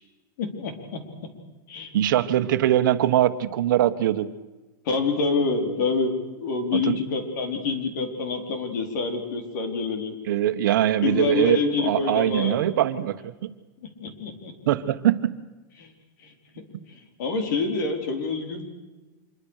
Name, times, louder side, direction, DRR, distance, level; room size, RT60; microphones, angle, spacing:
voice 1, 0.4-1.0 1.7-1.9 4.8-10.2 11.0-12.6 14.0-14.7 15.8-15.9 16.2-16.3 16.9-18.7, left 4 dB, 60° left, 6 dB, 4.5 m, -27 dB
voice 2, 1.9-4.3 6.7-7.0 10.3-13.5 14.7-15.4, right 12 dB, 65° right, 10 dB, 1.3 m, -22 dB
26.0 x 23.5 x 6.6 m, 1.2 s
supercardioid pair, 160°, 11 cm